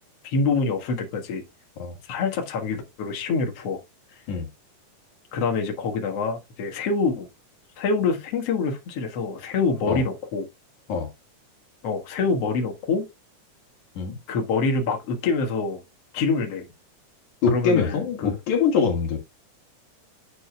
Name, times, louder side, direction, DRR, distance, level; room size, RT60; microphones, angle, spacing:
voice 1, 0.2-1.4 2.0-3.8 5.3-7.3 7.8-10.5 11.8-13.1 14.3-15.8 16.1-16.7 17.5-18.4, left 4 dB, 55° left, 2.5 m, -25 dB
voice 2, 17.4-19.2, left 5 dB, 75° left, 3.2 m, -23 dB
9.8 x 7.9 x 2.3 m
omnidirectional pair, 3.5 m